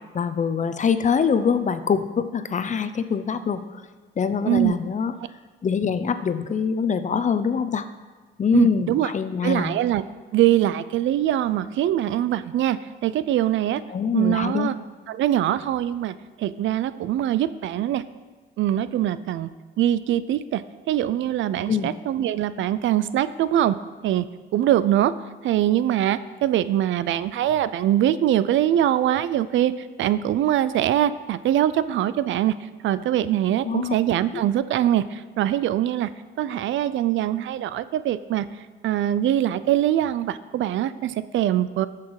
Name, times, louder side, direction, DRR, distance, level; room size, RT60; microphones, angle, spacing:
voice 1, 0.1-3.8 4.2-5.1 5.6-7.9 8.4-9.7 13.9-14.7 21.7-21.9 33.6-33.9, left 6 dB, 40° left, 11 dB, 0.7 m, -24 dB
voice 2, 4.5-4.8 8.5-9.1 9.4-10.0 10.3-13.8 14.1-14.7 15.1-18.0 18.6-19.5 19.8-20.6 20.9-23.7 24.0-24.2 24.5-25.1 25.4-32.5 32.8-36.1 36.4-38.5 38.8-41.9, right 12 dB, 75° right, 15 dB, 0.5 m, -23 dB
13.5 x 5.9 x 4.8 m, 1.3 s
cardioid pair, 90°, 20 cm